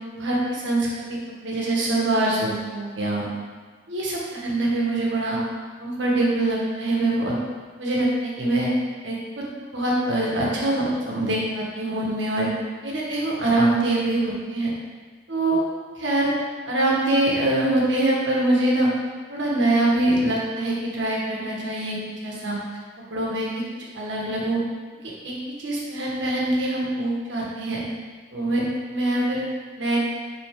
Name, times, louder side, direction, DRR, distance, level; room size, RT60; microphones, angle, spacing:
voice 1, 0.1-1.0 1.4-3.3 3.9-5.4 5.8-7.3 7.8-8.7 9.0-12.5 12.8-14.7 15.3-15.6 15.9-16.3 16.7-18.9 19.3-22.0 22.2-22.6 23.1-23.6 23.9-24.6 25.2-27.8 28.3-29.4 29.8-30.2, right 1 dB, 70° right, -4 dB, 1.6 m, -24 dB
6.1 x 5.6 x 3.8 m, 1.4 s
head